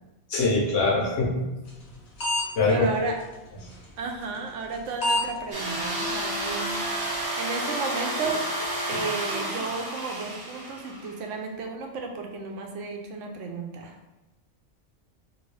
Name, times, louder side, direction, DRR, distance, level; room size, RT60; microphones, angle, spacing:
voice 1, 0.3-1.5 2.6-2.8, left 3 dB, 85° left, -3 dB, 1.2 m, -23 dB
sound 1, 1.7-1.9 2.2-2.4 2.7-2.8 3.7-3.8 4.7-4.8 5.0-5.2 5.7-5.8 6.2-6.3 6.8-6.9, left 1 dB, 65° left, 1.1 m, -25 dB
voice 2, 2.7-3.2 4.0-6.9 7.4-8.4 8.9-14.0, right 4 dB, 90° right, 3 dB, 0.9 m, -33 dB
sound 2, 5.5-11.2, right 1 dB, 30° right, 0.5 m, -31 dB
3.0 x 2.6 x 3.2 m, 1.0 s
omnidirectional pair, 1.2 m